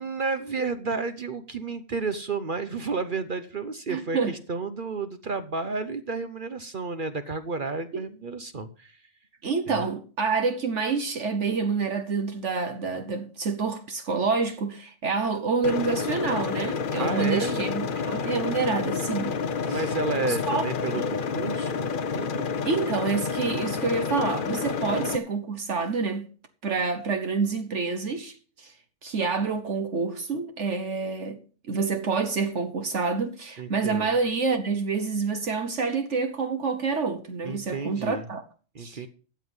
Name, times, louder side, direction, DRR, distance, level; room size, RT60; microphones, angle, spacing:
voice 1, 0.0-9.0 9.7-9.8 17.0-17.6 19.7-21.9 22.1-22.4 33.6-34.1 37.4-38.2 38.7-39.1, right 4 dB, 45° right, 0.9 m, -31 dB
voice 2, 3.9-4.3 7.9-8.0 9.4-19.3 19.6-19.9 20.3-20.6 21.0-21.1 22.6-26.2 26.6-28.7 29.0-31.4 31.7-38.4 38.8-39.1, right 4 dB, 65° right, 1.4 m, -27 dB
sound 1, 15.6-25.2, left 5 dB, 45° left, 0.8 m, -29 dB
13.0 x 8.0 x 5.4 m
omnidirectional pair, 1.4 m